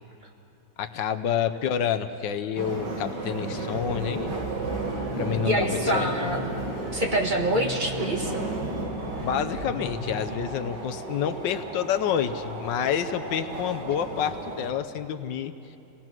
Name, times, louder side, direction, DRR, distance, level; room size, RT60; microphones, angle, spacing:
voice 1, 0.8-4.3 5.2-6.3 9.2-15.5, left 8 dB, 85° left, 9 dB, 1.5 m, -28 dB
sound 1, 2.6-14.7, right 2 dB, 75° right, 2.8 m, -34 dB
sound 2, 3.7-10.5, equal, 90° right, 8.6 m, -38 dB
voice 2, 5.4-6.5 6.9-8.4, right 1 dB, 30° right, 0 dB, 1.7 m, -26 dB
28.0 x 18.5 x 6.1 m, 2.7 s
omnidirectional pair, 1.9 m